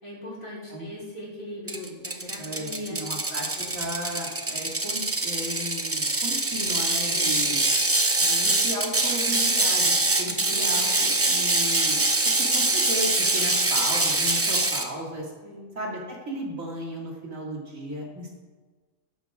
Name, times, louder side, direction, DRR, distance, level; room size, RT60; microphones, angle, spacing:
voice 1, 0.0-3.0 3.6-3.9 7.1-7.5 10.2-10.7 13.6-13.7 15.4-15.7, left 1 dB, 80° left, -7 dB, 4.9 m, -40 dB
Ratchet pawl, 1.7-14.9, right 2 dB, 15° right, 0.4 m, -24 dB
voice 2, 2.4-7.6 8.2-15.3 15.7-18.3, right 1 dB, 75° right, -2 dB, 2.9 m, -35 dB
14.5 x 11.5 x 3.7 m, 1.3 s
omnidirectional pair, 1.4 m